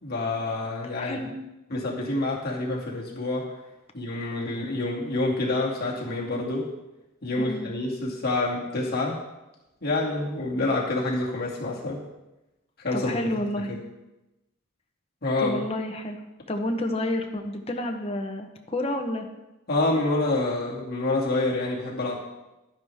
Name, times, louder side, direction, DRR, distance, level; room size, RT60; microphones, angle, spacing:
voice 1, 0.0-1.2 1.7-3.5 3.9-6.7 7.2-9.2 9.8-12.0 12.8-13.2 13.7-13.8 15.2-15.6 19.7-22.2, left 2 dB, 45° left, -4 dB, 2.5 m, -27 dB
voice 2, 1.0-1.3 7.4-7.7 12.9-13.7 15.4-16.2 16.5-19.3, left 1 dB, 30° left, 4 dB, 1.0 m, -29 dB
11.5 x 9.9 x 3.5 m, 0.98 s
head